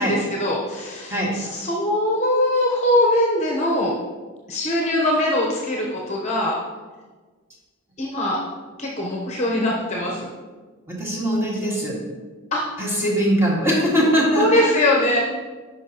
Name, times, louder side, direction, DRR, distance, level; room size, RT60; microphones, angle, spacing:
voice 1, 0.0-3.9 4.5-6.6 8.0-8.4 8.8-10.3 12.5-12.6 14.3-15.2, left 1 dB, 35° left, -2 dB, 0.9 m, -22 dB
voice 2, 10.9-12.0 12.8-15.2, equal, 10° right, -5 dB, 1.8 m, -22 dB
10.0 x 5.4 x 2.9 m, 1.4 s
head